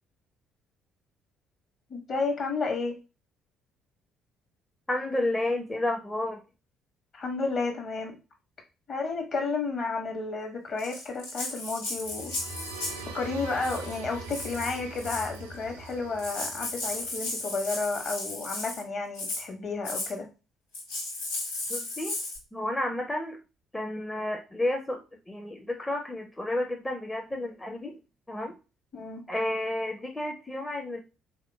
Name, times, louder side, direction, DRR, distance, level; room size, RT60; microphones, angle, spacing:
voice 1, 1.9-3.0 7.1-8.2 8.9-12.3 13.1-20.3 28.9-29.2, left 3 dB, 45° left, 2 dB, 1.3 m, -32 dB
voice 2, 4.9-6.4 21.7-22.2 22.5-23.4 23.7-25.0 25.3-27.9 28.3-28.5 29.3-31.0, left 1 dB, 15° left, 2 dB, 0.6 m, -31 dB
Rattle (instrument), 10.8-13.1 13.6-13.9 14.3-15.4 15.9-16.0 16.2-18.8 19.1-19.4 19.8-20.1 20.7-22.4, left 2 dB, 80° left, 0.9 m, -35 dB
sound 1, 12.0-17.7, right 2 dB, 80° right, 0.4 m, -42 dB
3.6 x 2.8 x 2.4 m, 0.30 s
figure-of-eight pair, 45°, 0 cm